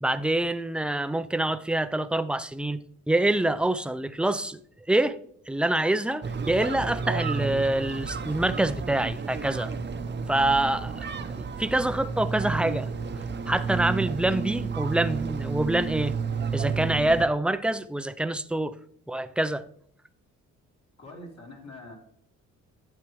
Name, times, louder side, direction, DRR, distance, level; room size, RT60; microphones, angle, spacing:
voice 1, 0.0-4.6 4.9-5.2 5.5-9.7 10.3-11.1 11.4-12.9 13.5-16.1 16.5-18.7 19.1-19.6, right 1 dB, 5° right, 0.4 m, -26 dB
sound 1, 6.2-17.3, right 5 dB, 35° right, 0.8 m, -31 dB
voice 2, 21.0-22.0, left 1 dB, 55° left, 3.0 m, -44 dB
12.0 x 8.2 x 3.1 m
cardioid pair, 90°, 30 cm